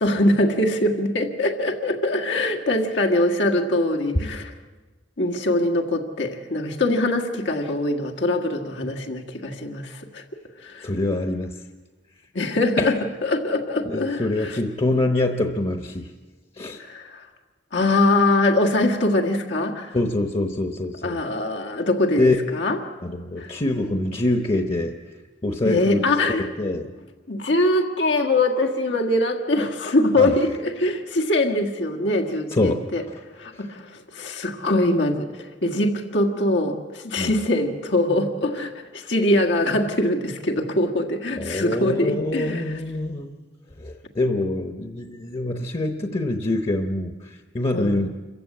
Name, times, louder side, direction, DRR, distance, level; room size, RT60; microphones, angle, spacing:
voice 1, 0.0-4.5 5.2-10.2 10.6-10.9 12.3-14.6 16.8-17.3 17.7-20.0 21.0-22.8 23.4-23.5 25.6-26.5 27.3-33.0 33.4-42.8 47.7-48.0, left 1 dB, 85° left, 2 dB, 1.7 m, -23 dB
voice 2, 10.8-11.5 12.8-12.9 13.9-16.1 16.6-16.8 19.9-21.2 22.2-22.4 23.0-24.9 25.4-26.0 26.3-26.9 30.2-30.3 32.5-32.8 33.5-33.6 37.2-37.3 41.4-43.3 43.8-48.1, left 2 dB, 35° left, 6 dB, 1.0 m, -25 dB
26.5 x 15.5 x 8.5 m, 1.3 s
head